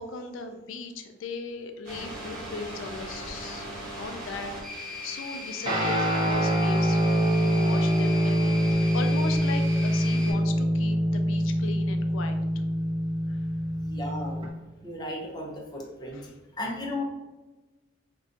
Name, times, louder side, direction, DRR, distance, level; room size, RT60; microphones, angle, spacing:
voice 1, 0.0-3.7 4.0-7.1 7.4-12.4 13.3-13.4 16.1-16.3, left 4 dB, 80° left, 6 dB, 0.4 m, -38 dB
sound 1, 1.8-10.3, left 2 dB, 50° right, 1.2 m, -38 dB
Guitar, 5.7-14.5, equal, 25° right, 0.5 m, -25 dB
voice 2, 13.8-14.4 14.8-16.2 16.6-17.0, left 1 dB, 20° left, -2 dB, 0.6 m, -35 dB
2.5 x 2.2 x 3.7 m, 1.1 s
head